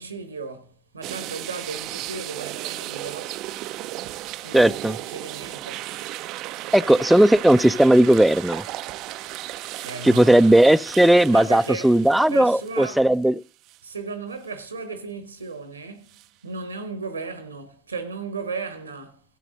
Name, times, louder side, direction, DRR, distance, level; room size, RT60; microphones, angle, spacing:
voice 1, 0.0-3.4 4.4-5.9 9.8-10.4 11.2-11.9 12.3-13.0 13.8-16.2 16.4-19.2, right 4 dB, 90° right, 1.0 m, -35 dB
sound 1, 1.0-13.2 13.7-13.8 16.1-16.3, right 15 dB, 65° right, 0.4 m, -35 dB
voice 2, 4.5-5.0 6.7-8.6 10.0-13.4, right 1 dB, 5° right, 0.5 m, -16 dB
15.0 x 7.7 x 3.9 m
figure-of-eight pair, 50°, 0 cm